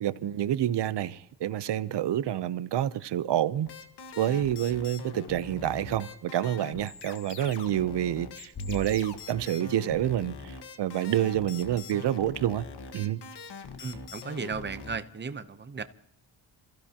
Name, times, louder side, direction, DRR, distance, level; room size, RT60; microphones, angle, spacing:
voice 1, 0.0-3.7 4.2-12.7 12.9-13.2, right 11 dB, 80° right, 0.8 m, -28 dB
sound 1, 3.7-15.0, left 5 dB, 75° left, 1.6 m, -43 dB
sound 2, 8.2-8.8, left 1 dB, 50° left, 3.1 m, -48 dB
voice 2, 13.8-15.8, right 5 dB, 25° right, 0.8 m, -35 dB
28.5 x 15.5 x 2.9 m
wide cardioid pair, 180°, 41 cm